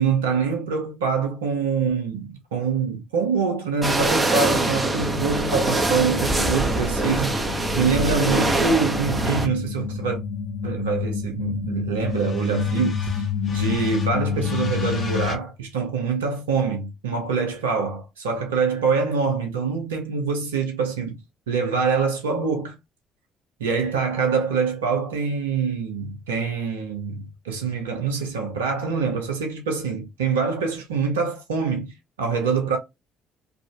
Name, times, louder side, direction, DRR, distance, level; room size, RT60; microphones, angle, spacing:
voice 1, 0.0-7.5 7.7-10.2 10.6-21.2 21.5-22.8 23.6-32.8, right 5 dB, 90° right, 0.7 m, -25 dB
sound 1, 3.8-9.5, right 2 dB, 20° right, 1.0 m, -23 dB
sound 2, 4.3-15.4, left 6 dB, 45° left, 0.9 m, -29 dB
3.7 x 2.5 x 2.2 m
hypercardioid pair, 55°, 0 cm